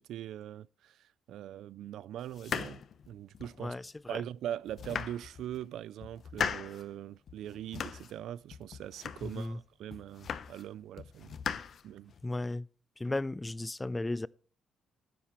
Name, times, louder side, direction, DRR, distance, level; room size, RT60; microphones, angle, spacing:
voice 1, 0.0-2.8 3.1-3.7 4.1-11.4 11.8-12.1, right 11 dB, 80° right, 0.4 m, -42 dB
sound 1, 2.3-3.6 4.2-4.3 4.7-5.6 6.0-6.8 7.3-8.2 8.5-9.5 9.9-10.7 11.0-12.3, left 7 dB, 55° left, 0.8 m, -39 dB
voice 2, 3.6-4.2 9.2-9.6 12.2-12.7 13.0-14.3, left 2 dB, 15° left, 0.4 m, -35 dB
13.0 x 10.0 x 3.1 m
cardioid pair, 90°, 0 cm